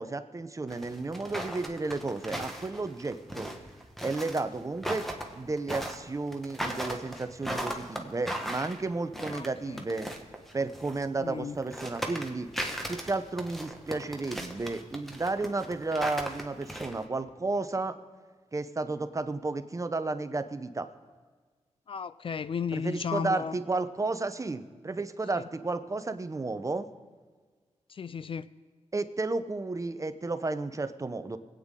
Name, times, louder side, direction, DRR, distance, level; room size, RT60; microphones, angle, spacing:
voice 1, 0.0-3.5 4.0-5.1 5.3-10.1 10.5-12.5 12.9-18.0 18.5-20.9 22.7-26.9 28.9-31.4, right 3 dB, 25° right, 11 dB, 0.7 m, -32 dB
sound 1, 0.7-11.1 11.5-17.0, equal, ahead, 1.3 m, -37 dB
voice 2, 9.3-9.8 11.2-11.6 21.9-23.6 25.3-25.4 27.9-28.5, left 6 dB, 50° left, 15 dB, 0.4 m, -34 dB
23.0 x 9.0 x 3.7 m, 1.5 s
wide cardioid pair, 95°, 12 cm